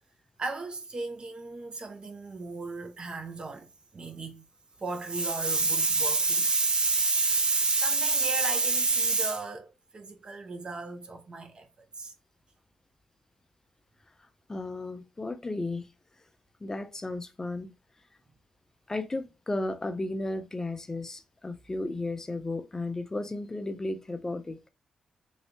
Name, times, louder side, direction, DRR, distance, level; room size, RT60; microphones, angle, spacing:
voice 1, 0.4-3.7 3.9-4.4 4.8-11.7 12.0-12.1, right 3 dB, 40° right, 0.8 m, -29 dB
voice 2, 14.5-15.9 16.6-17.7 18.9-24.7, left 2 dB, 25° left, 0.4 m, -34 dB
3.1 x 2.8 x 2.8 m
cardioid pair, 70°, 2 cm